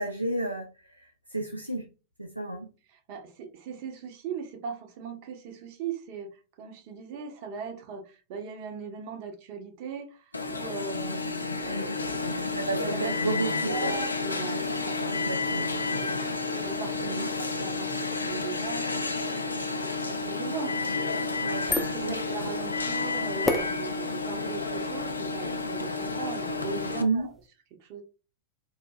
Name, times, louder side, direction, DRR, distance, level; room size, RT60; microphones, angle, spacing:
voice 1, 0.0-1.8 2.2-2.7 12.5-16.2 17.0-17.3 21.4-22.2 27.0-27.3, right 2 dB, 85° right, 0.4 m, -32 dB
voice 2, 2.9-11.2 11.6-15.0 16.0-16.3 16.6-19.0 19.8-20.7 21.8-27.3 27.8-28.0, right 6 dB, 45° right, 0.8 m, -39 dB
Alarm, 10.3-27.0, left 3 dB, 80° left, 0.4 m, -31 dB
sound 1, 21.3-27.5, left 2 dB, 10° left, 0.4 m, -36 dB
4.1 x 2.6 x 2.3 m
figure-of-eight pair, 90°, 0 cm